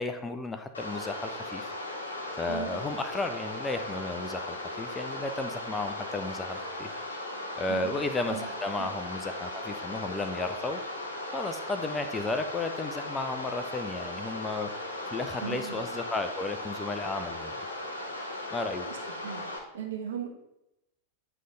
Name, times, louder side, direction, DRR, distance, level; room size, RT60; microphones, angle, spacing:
voice 1, 0.0-1.7 2.4-6.9 7.6-10.8 11.3-14.7 15.1-17.5 18.5-18.9, left 3 dB, 15° left, 7 dB, 0.5 m, -33 dB
sound 1, 0.7-19.6, left 1 dB, 75° left, 1.2 m, -37 dB
voice 2, 2.5-2.8 7.7-8.0 8.3-8.5 8.8-8.9 15.4-15.8 18.4-18.5 18.8-19.0 19.2-19.4 19.7-20.3, right 8 dB, 60° right, 1 dB, 1.3 m, -37 dB
9.2 x 3.3 x 3.9 m, 0.87 s
figure-of-eight pair, 90°, 0 cm